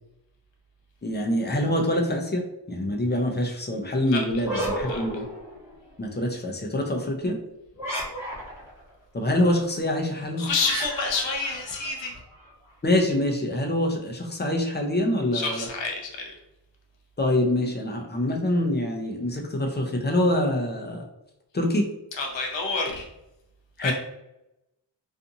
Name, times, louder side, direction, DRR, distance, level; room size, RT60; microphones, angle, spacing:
voice 1, 1.0-5.3 6.0-7.4 9.1-10.5 12.8-15.7 17.2-21.0 21.5-21.9 23.8-23.9, left 1 dB, 25° left, 2 dB, 0.5 m, -25 dB
sound 1, 4.4-5.9 7.7-8.8 10.6-12.5, right 1 dB, 5° right, 1.2 m, -33 dB
voice 2, 10.4-12.1 15.3-16.3 22.2-23.1 23.8-23.9, left 4 dB, 80° left, 1 dB, 0.8 m, -28 dB
2.6 x 2.4 x 2.7 m, 0.89 s
cardioid pair, 65°, 43 cm